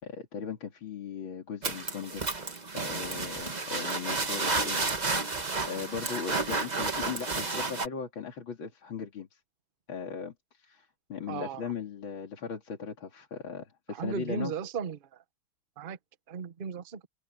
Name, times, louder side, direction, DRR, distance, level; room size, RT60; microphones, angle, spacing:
voice 1, 0.0-2.3 2.7-4.8 5.1-9.4 9.9-14.5, left 6 dB, 65° left, 3.2 m, -38 dB
sound 1, 1.6-7.9, right 3 dB, 25° right, 1.3 m, -31 dB
voice 2, 11.3-11.7 13.9-15.0 15.8-16.0 16.3-17.0, right 6 dB, 55° right, 0.5 m, -35 dB
open air
omnidirectional pair, 2.4 m